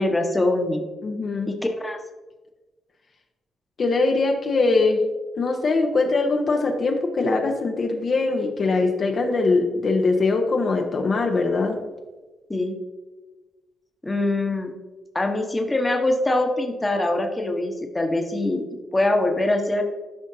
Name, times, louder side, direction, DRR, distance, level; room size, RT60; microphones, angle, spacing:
voice 1, 0.0-0.9 1.5-1.6 1.8-2.0 12.5-12.8 14.0-14.7 15.1-18.6 18.9-19.8, left 2 dB, 15° left, 3 dB, 1.1 m, -23 dB
voice 2, 1.0-1.5 3.8-5.0 5.4-11.8, left 3 dB, 50° left, 3 dB, 0.9 m, -22 dB
12.5 x 5.2 x 2.7 m, 1.2 s
cardioid pair, 80°, 0 cm